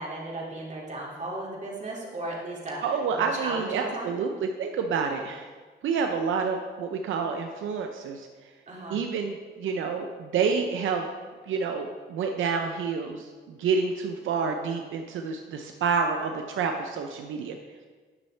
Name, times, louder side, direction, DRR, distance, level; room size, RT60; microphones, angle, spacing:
voice 1, 0.0-2.8 3.1-4.1 8.7-9.0, right 2 dB, 35° right, -4 dB, 2.4 m, -35 dB
voice 2, 2.8-5.5 5.8-8.3 8.9-11.1 11.5-17.6, right 5 dB, 85° right, 4 dB, 0.5 m, -28 dB
9.6 x 6.4 x 3.3 m, 1.5 s
cardioid pair, 75°, 20 cm